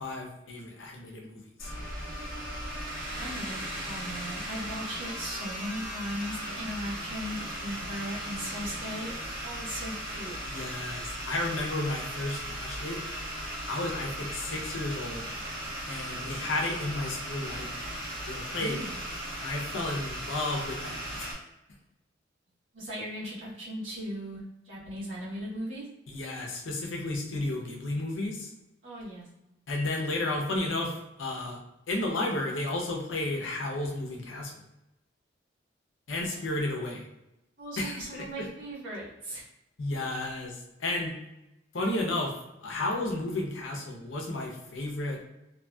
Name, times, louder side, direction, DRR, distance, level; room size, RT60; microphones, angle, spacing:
voice 1, 0.0-1.7 10.5-13.0 13.7-15.2 15.9-17.8 18.3-18.9 19.4-21.3 26.1-28.5 29.7-31.6 31.9-34.5 36.1-37.0 37.8-38.5 39.8-41.2 41.7-42.3 42.6-45.2, left 2 dB, 85° left, 0 dB, 0.6 m, -32 dB
sound 1, 1.6-21.3, right 1 dB, 70° right, 1.2 m, -37 dB
voice 2, 3.1-9.1 9.4-10.4 18.5-19.0 22.7-25.8 28.8-29.3 36.2-36.4 37.6-39.4, equal, 90° right, -8 dB, 1.3 m, -38 dB
2.7 x 2.6 x 2.2 m, 0.91 s
head